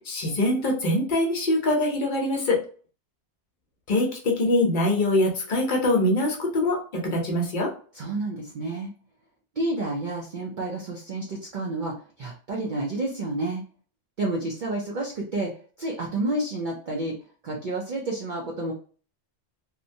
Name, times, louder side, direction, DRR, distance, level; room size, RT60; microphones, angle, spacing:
voice 1, 0.1-2.6 3.9-7.7, left 1 dB, 50° left, 0 dB, 0.9 m, -23 dB
voice 2, 7.9-8.9 9.6-13.6 14.2-17.2 17.4-18.7, right 2 dB, 55° right, -2 dB, 0.6 m, -30 dB
2.8 x 2.1 x 2.6 m, 0.41 s
omnidirectional pair, 1.2 m